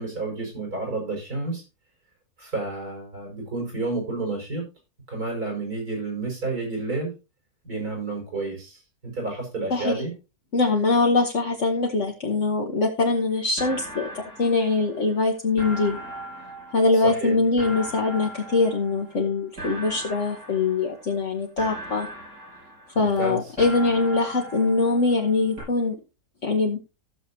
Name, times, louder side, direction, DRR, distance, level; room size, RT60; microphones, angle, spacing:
voice 1, 0.0-1.6 2.4-4.7 5.1-7.1 7.6-10.1 16.9-17.4 22.9-23.4, right 3 dB, 70° right, 1 dB, 6.0 m, -30 dB
voice 2, 9.7-10.0 10.5-16.0 16.7-22.1 23.0-26.0 26.4-26.8, left 3 dB, 50° left, 0 dB, 1.5 m, -23 dB
sound 1, 13.1-13.2 13.6-15.2 15.6-19.3 19.6-21.2 21.6-23.2 23.6-25.3 25.6-25.7, right 1 dB, 85° right, 7.7 m, -39 dB
15.5 x 6.9 x 2.8 m, 0.28 s
omnidirectional pair, 1.7 m